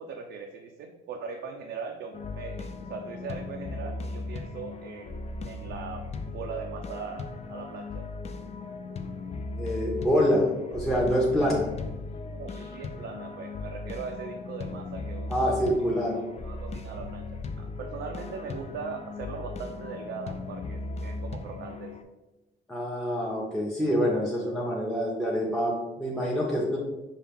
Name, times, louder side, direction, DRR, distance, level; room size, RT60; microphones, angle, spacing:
voice 1, 0.0-8.1 12.1-15.6 16.1-21.9, right 5 dB, 70° right, 3 dB, 0.5 m, -40 dB
sound 1, 2.1-22.0, left 3 dB, 35° left, 0.4 m, -37 dB
voice 2, 9.6-11.7 15.3-16.2 22.7-26.8, equal, ahead, -5 dB, 0.8 m, -26 dB
5.5 x 2.3 x 3.5 m, 1.0 s
cardioid pair, 90°, 20 cm